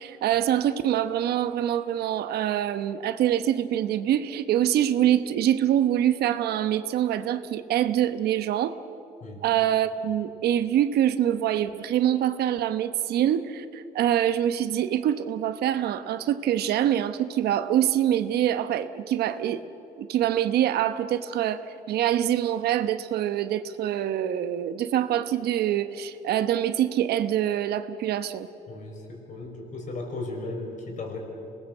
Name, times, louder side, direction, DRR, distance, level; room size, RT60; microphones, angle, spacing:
voice 1, 0.0-8.8 9.4-19.6 20.0-21.6 21.9-28.5, right 11 dB, 70° right, 11 dB, 1.0 m, -25 dB
voice 2, 28.7-31.2, left 2 dB, 50° left, 2 dB, 5.5 m, -36 dB
26.0 x 19.5 x 7.8 m, 3.0 s
cardioid pair, 110°, 17 cm